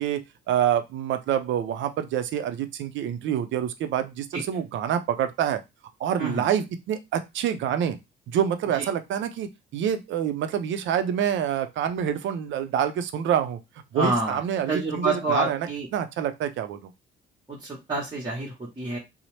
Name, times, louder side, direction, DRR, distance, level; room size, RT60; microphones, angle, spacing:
voice 1, 0.0-5.6 6.0-8.0 8.3-13.6 13.9-15.6 15.9-16.9, right 9 dB, 70° right, 10 dB, 0.5 m, -27 dB
voice 2, 13.9-14.4 14.7-15.9 17.5-19.0, right 2 dB, 20° right, -5 dB, 0.9 m, -28 dB
2.7 x 2.0 x 3.1 m, 0.22 s
cardioid pair, 90°, 20 cm